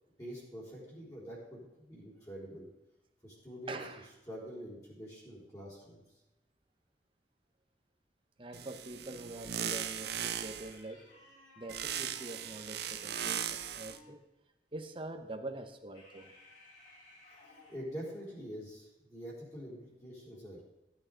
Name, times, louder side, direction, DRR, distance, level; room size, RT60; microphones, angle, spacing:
voice 1, 0.2-2.7 3.2-3.8 4.3-6.0 17.7-20.6, equal, 20° left, -7 dB, 3.8 m, -45 dB
voice 2, 3.7-4.1 8.4-11.1 11.6-14.2 14.7-16.3, right 2 dB, 30° right, 5 dB, 0.9 m, -44 dB
sound 1, 8.5-10.8 11.7-14.0, right 9 dB, 60° right, 0.6 m, -38 dB
sound 2, 10.1-14.2 15.9-17.8, left 1 dB, 80° left, 5.0 m, -59 dB
15.5 x 8.9 x 3.9 m, 0.98 s
head